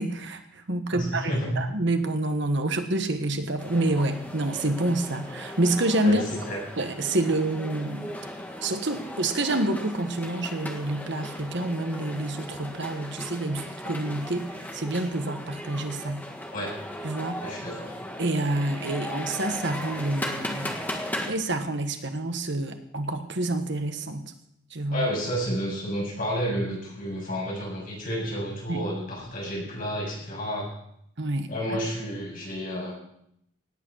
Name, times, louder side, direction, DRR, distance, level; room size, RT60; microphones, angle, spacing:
voice 1, 0.0-6.2 6.8-8.1 8.6-16.2 17.0-17.4 18.2-20.8 21.3-24.3 24.7-25.1 28.7-28.8 31.2-31.8, right 2 dB, 55° right, 7 dB, 1.4 m, -28 dB
voice 2, 0.9-1.5 6.0-6.6 16.5-16.7 17.4-17.9 24.9-30.7 31.5-32.9, equal, 40° left, -3 dB, 7.4 m, -30 dB
sound 1, 3.6-21.3, left 1 dB, 10° left, 1.6 m, -37 dB
18.0 x 9.0 x 6.4 m, 0.74 s
head